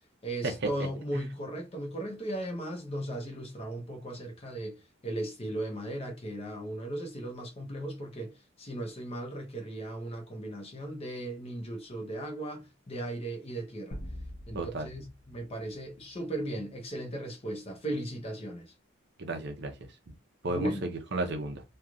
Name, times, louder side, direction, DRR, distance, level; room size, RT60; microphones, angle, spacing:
voice 1, 0.2-14.0 14.5-18.7 20.5-20.9, right 1 dB, 30° left, 0.8 m, -37 dB
sound 1, 13.9-16.5, left 1 dB, 85° left, 0.9 m, -45 dB
voice 2, 14.5-14.9 19.2-19.8 20.4-21.6, right 2 dB, 55° right, 0.6 m, -33 dB
3.1 x 2.3 x 2.4 m
head